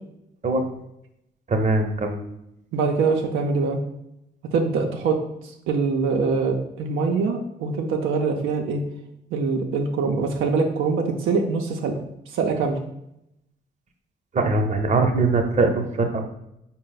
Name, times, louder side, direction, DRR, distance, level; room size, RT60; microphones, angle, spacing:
voice 1, 1.5-2.2 14.3-16.2, right 3 dB, 35° right, 4 dB, 0.7 m, -21 dB
voice 2, 2.7-3.8 4.5-5.2 5.7-8.8 9.3-12.0 12.3-12.8, right 4 dB, 90° right, 2 dB, 0.5 m, -23 dB
4.2 x 2.0 x 3.9 m, 0.81 s
cardioid pair, 65°, 20 cm